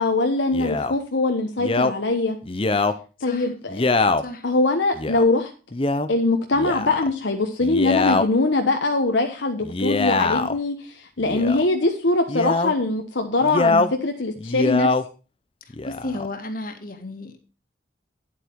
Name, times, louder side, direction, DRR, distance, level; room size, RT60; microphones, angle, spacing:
voice 1, 0.0-2.4 3.2-3.8 4.4-5.5 6.1-14.9, left 2 dB, 70° left, 4 dB, 1.1 m, -22 dB
Male speech man speaking, 0.5-0.9 1.6-1.9 2.5-3.0 3.7-4.2 5.0-5.2 5.7-6.1 6.5-7.1 7.6-8.2 9.6-10.6 11.2-11.7 12.3-12.7 13.4-13.9 14.4-15.0 15.7-16.3, left 3 dB, 30° left, 0.7 m, -23 dB
voice 2, 15.7-17.5, left 2 dB, 45° left, 5 dB, 1.8 m, -33 dB
10.5 x 8.2 x 4.6 m, 0.34 s
head